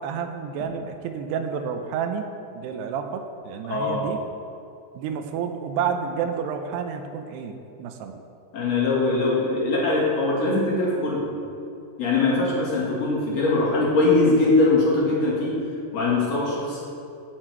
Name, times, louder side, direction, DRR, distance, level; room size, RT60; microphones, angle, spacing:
voice 1, 0.0-4.2 4.9-8.2, right 7 dB, 80° right, 6 dB, 2.8 m, -30 dB
voice 2, 3.7-4.1 8.5-11.3 12.0-15.6 15.9-16.8, left 2 dB, 45° left, -5 dB, 2.9 m, -22 dB
16.0 x 6.6 x 4.6 m, 2.6 s
omnidirectional pair, 4.9 m